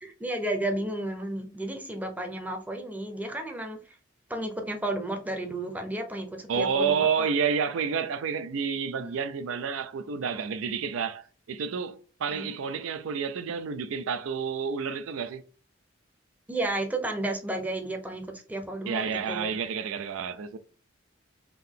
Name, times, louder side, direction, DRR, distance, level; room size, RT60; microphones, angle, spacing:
voice 1, 0.0-4.0 4.3-7.3 9.0-9.2 12.3-12.5 16.5-19.5, right 1 dB, 10° right, 0.6 m, -33 dB
voice 2, 6.5-15.4 18.9-20.6, right 6 dB, 80° right, 0.4 m, -29 dB
3.7 x 2.7 x 3.6 m
head